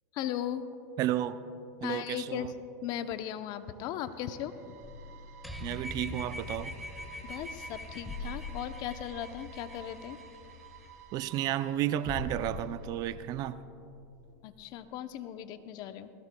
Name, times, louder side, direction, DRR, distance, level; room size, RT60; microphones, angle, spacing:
voice 1, 0.1-0.6 1.8-2.5 2.8-4.8 7.2-10.2 14.4-16.1, left 10 dB, 50° left, 10 dB, 0.8 m, -37 dB
voice 2, 1.0-1.4 1.8-2.5 5.6-6.8 11.1-13.6, right 12 dB, 45° right, 13 dB, 0.5 m, -32 dB
sound 1, 3.2-13.2, right 8 dB, 75° right, 1.2 m, -53 dB
sound 2, 4.8-14.4, left 3 dB, 15° left, 2.0 m, -46 dB
sound 3, 5.4-11.0, left 2 dB, ahead, 1.5 m, -44 dB
19.5 x 17.0 x 2.3 m, 2.6 s
hypercardioid pair, 100°, 9 cm